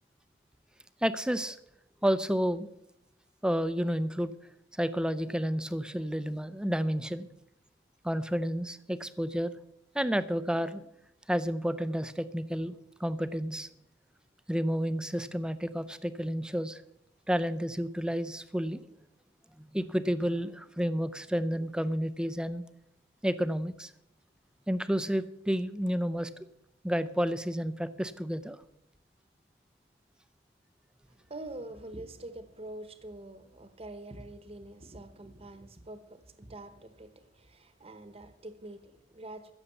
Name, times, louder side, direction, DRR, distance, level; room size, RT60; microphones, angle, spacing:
voice 1, 1.0-1.6 2.0-2.7 3.4-4.3 4.8-7.3 8.0-9.5 9.9-10.8 11.3-13.7 14.5-16.8 17.3-18.8 19.6-22.6 23.2-23.9 24.7-26.3 26.8-28.6, equal, 5° right, 14 dB, 0.5 m, -30 dB
voice 2, 31.3-39.5, right 1 dB, 30° right, 10 dB, 1.1 m, -45 dB
15.5 x 7.2 x 7.0 m, 0.84 s
head